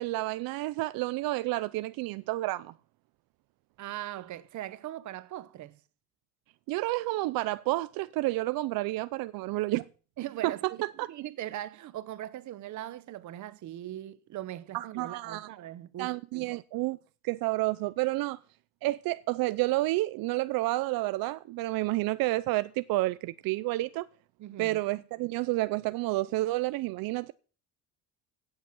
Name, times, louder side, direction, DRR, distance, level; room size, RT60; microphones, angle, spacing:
voice 1, 0.0-2.7 6.7-9.9 10.4-11.1 14.7-15.5 16.0-17.0 17.2-18.4 18.8-24.1 24.6-27.3, right 19 dB, 80° right, 0.6 m, -30 dB
voice 2, 3.8-5.8 10.2-16.6 24.4-24.8, right 13 dB, 55° right, 1.0 m, -40 dB
16.5 x 8.2 x 6.1 m
cardioid pair, 160°, 35 cm